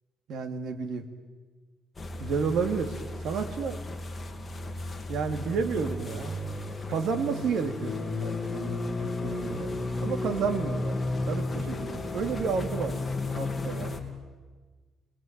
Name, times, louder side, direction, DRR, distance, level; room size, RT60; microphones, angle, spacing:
voice 1, 0.3-1.0 2.2-3.0 3.2-3.8 5.1-6.4 6.9-8.8 9.2-9.7 10.0-11.0 11.3-12.9 13.3-13.9, right 5 dB, 75° right, 5 dB, 2.8 m, -31 dB
sound 1, 2.0-14.0, left 2 dB, 25° left, 3.3 m, -33 dB
29.5 x 21.0 x 9.1 m, 1.3 s
cardioid pair, 125°, 0 cm